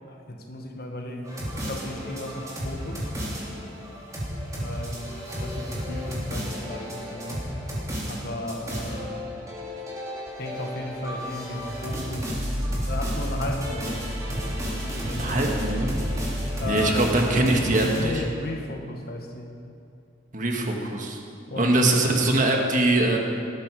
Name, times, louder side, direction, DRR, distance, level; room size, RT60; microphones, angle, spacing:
voice 1, 0.1-1.4 1.7-3.1 4.6-7.5 8.1-9.1 10.4-15.5 16.6-17.1 18.0-19.6 21.5-21.9, left 1 dB, 50° left, 3 dB, 1.6 m, -35 dB
sound 1, 1.2-18.1, equal, 15° right, 3.3 m, -32 dB
voice 2, 15.1-15.9 16.7-18.2 20.3-21.2 21.6-23.2, right 2 dB, 40° right, 1 dB, 1.7 m, -22 dB
18.5 x 12.5 x 4.9 m, 2.5 s
head